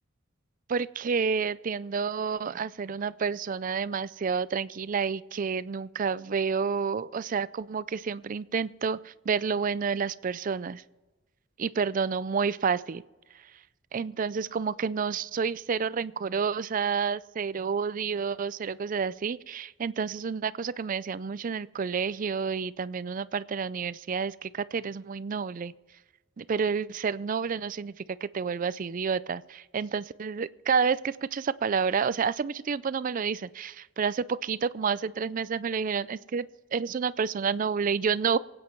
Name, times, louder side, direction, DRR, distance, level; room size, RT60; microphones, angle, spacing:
voice 1, 0.7-10.8 11.6-13.0 13.9-25.7 26.4-38.4, right 6 dB, 45° right, 17 dB, 0.4 m, -29 dB
24.0 x 8.8 x 4.5 m, 1.2 s
head